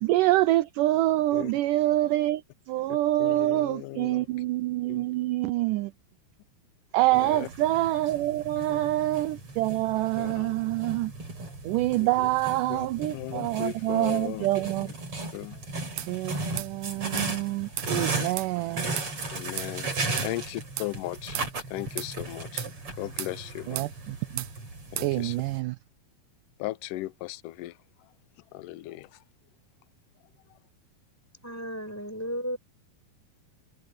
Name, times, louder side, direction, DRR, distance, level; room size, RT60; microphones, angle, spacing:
voice 1, 0.0-2.4 2.7-5.9 6.9-11.1 11.6-14.9 15.9-18.8 23.7-24.4 25.0-25.8, right 16 dB, 85° right, 1.8 m, -26 dB
voice 2, 2.9-4.3 4.9-5.1 7.1-7.5 8.6-9.1 10.2-10.6 12.0-12.3 12.7-12.9 13.1-14.5 14.8-14.9 15.3-15.6 19.3-19.9 20.2-21.4 21.7-22.7 23.0-23.9 24.9-25.4 26.6-27.8 28.5-29.2, left 17 dB, 80° left, 2.0 m, -37 dB
sound 1, 7.1-25.6, right 3 dB, 35° right, 6.0 m, -36 dB
sound 2, 16.0-16.1 16.6-16.7 17.2-17.3 17.8-17.9 18.4-18.5 19.0-19.1 19.6-19.7 20.2-20.3 20.8-20.9 21.3-21.5 22.0-22.1 22.6-22.7 23.2-23.4 23.8-23.9 24.4-24.5 25.0-25.1, right 13 dB, 70° right, 1.9 m, -35 dB
voice 3, 31.4-32.6, equal, 5° left, 4.7 m, -34 dB
omnidirectional pair, 4.3 m